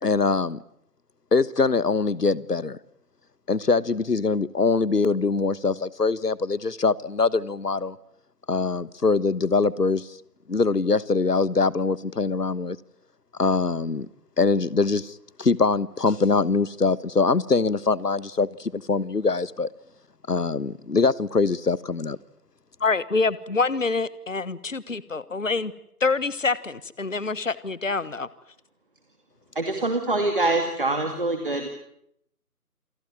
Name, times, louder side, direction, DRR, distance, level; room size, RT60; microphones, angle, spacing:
voice 1, 0.0-0.6 1.3-2.8 3.5-8.0 8.5-10.2 10.5-12.8 13.4-14.1 14.4-19.7 20.3-22.2, left 4 dB, 85° left, 19 dB, 1.4 m, -23 dB
voice 2, 22.8-25.7 26.0-28.3, left 4 dB, 55° left, 18 dB, 1.3 m, -26 dB
voice 3, 29.5-31.7, right 2 dB, 35° right, 5 dB, 2.4 m, -24 dB
28.5 x 20.0 x 9.6 m, 0.75 s
figure-of-eight pair, 175°, 46 cm